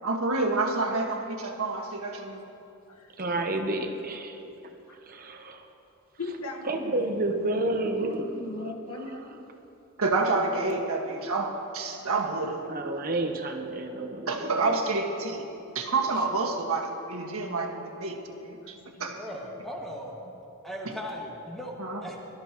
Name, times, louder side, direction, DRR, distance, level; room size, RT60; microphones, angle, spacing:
voice 1, 0.0-2.5 10.0-12.6 14.3-15.4 15.7-18.7 19.0-19.2 21.8-22.0, right 3 dB, 70° right, 0 dB, 1.7 m, -28 dB
voice 2, 3.2-4.4 5.1-5.6 6.7-8.2 12.7-14.8, right 2 dB, 40° right, 4 dB, 0.9 m, -30 dB
voice 3, 6.2-7.6 8.0-9.4 18.6-19.1, left 2 dB, 80° left, 2 dB, 1.5 m, -39 dB
voice 4, 19.2-20.1 20.6-21.7 22.0-22.2, equal, ahead, -3 dB, 1.8 m, -37 dB
23.0 x 13.5 x 3.0 m, 2.8 s
head